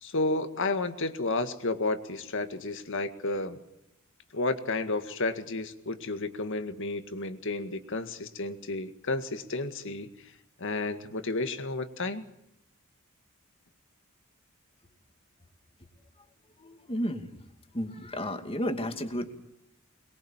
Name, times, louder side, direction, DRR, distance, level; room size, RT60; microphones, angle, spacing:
voice 1, 0.0-3.6 4.3-10.1 10.6-12.2, left 2 dB, 60° left, 9 dB, 1.9 m, -31 dB
voice 2, 16.6-17.3 17.7-19.3, equal, 25° left, 6 dB, 2.5 m, -32 dB
23.0 x 22.0 x 7.3 m, 0.84 s
head